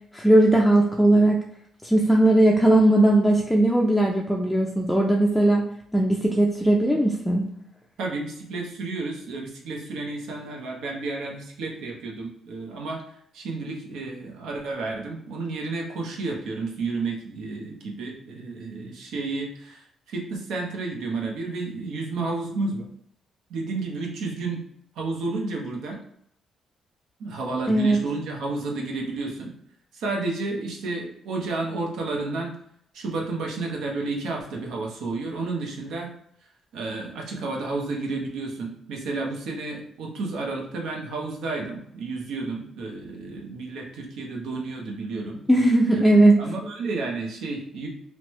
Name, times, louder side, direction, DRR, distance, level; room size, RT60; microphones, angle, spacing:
voice 1, 0.1-1.4 1.8-5.6 5.9-7.4 27.7-28.0 45.5-46.4, right 1 dB, 5° left, -1 dB, 0.4 m, -18 dB
voice 2, 8.0-22.9 23.5-24.6 25.0-26.0 27.2-29.5 29.9-32.5 32.9-36.1 36.7-45.4 45.9-47.9, right 3 dB, 80° right, 0 dB, 0.7 m, -31 dB
3.1 x 2.1 x 3.0 m, 0.70 s
cardioid pair, 90°, 0 cm